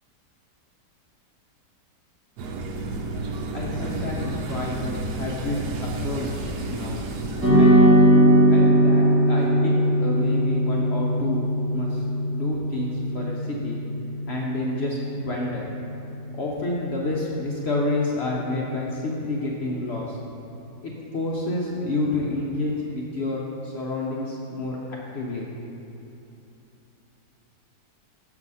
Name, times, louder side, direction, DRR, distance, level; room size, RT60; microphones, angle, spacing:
sound 1, 2.4-7.5, right 2 dB, 75° right, 1.2 m, -31 dB
voice 1, 3.5-7.0 7.5-7.8 8.5-11.4 11.7-13.8 14.3-15.6 16.3-20.2 20.8-24.8 25.1-25.5, left 2 dB, 60° left, -3 dB, 0.7 m, -29 dB
sound 2, 7.4-15.9, right 1 dB, 10° right, 1.3 m, -20 dB
6.4 x 4.8 x 5.4 m, 3.0 s
omnidirectional pair, 1.8 m